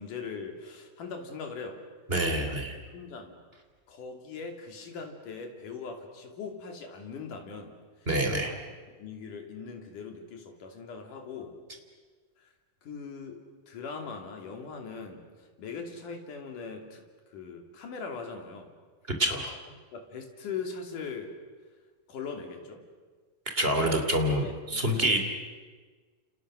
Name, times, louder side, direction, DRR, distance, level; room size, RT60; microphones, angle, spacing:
voice 1, 0.0-1.8 2.7-3.4 3.9-7.8 8.3-8.6 8.9-11.6 12.4-12.5 12.8-13.4 13.7-17.0 17.3-18.7 19.9-21.3 22.1-22.8 24.3-25.2, left 5 dB, 65° left, 4 dB, 4.3 m, -40 dB
voice 2, 2.1-2.8 8.1-8.5 19.2-19.5 23.5-25.2, right 1 dB, 20° right, 5 dB, 2.8 m, -26 dB
29.5 x 29.0 x 6.4 m, 1.4 s
omnidirectional pair, 4.0 m